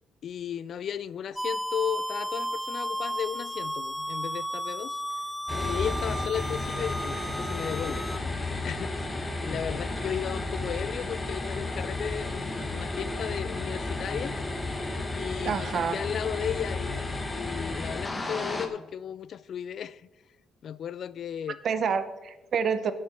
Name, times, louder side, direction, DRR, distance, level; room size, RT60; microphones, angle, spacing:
voice 1, 0.2-5.0 5.5-8.0 8.6-9.1 9.4-14.4 15.1-17.0 17.3-20.0 20.6-21.6, left 8 dB, 60° left, 0.3 m, -35 dB
sound 1, 1.4-8.2, right 1 dB, 5° right, 0.6 m, -34 dB
sound 2, 5.5-18.7, left 2 dB, 20° left, 1.3 m, -33 dB
voice 2, 15.4-16.0 21.6-22.9, right 6 dB, 60° right, 0.8 m, -28 dB
17.5 x 6.3 x 4.5 m
cardioid pair, 90°, 0 cm